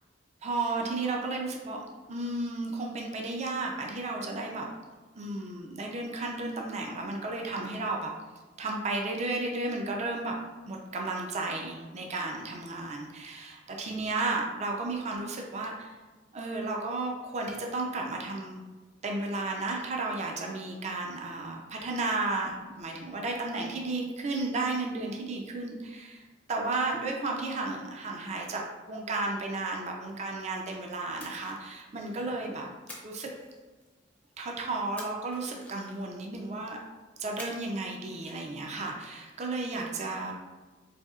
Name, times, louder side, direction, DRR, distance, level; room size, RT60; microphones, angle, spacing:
voice 1, 0.4-4.7 5.1-8.1 8.6-10.4 10.7-16.0 16.3-18.6 19.0-26.2 26.5-28.6 28.9-32.6 33.0-33.3 34.4-36.8 37.2-40.3, right 2 dB, 35° right, 0 dB, 0.4 m, -33 dB
Splash splatter, 31.2-32.3 32.9-34.1 35.0-36.2 37.4-37.9 38.1-38.3, left 1 dB, 10° left, 0.6 m, -48 dB
4.1 x 2.7 x 2.3 m, 1.3 s
head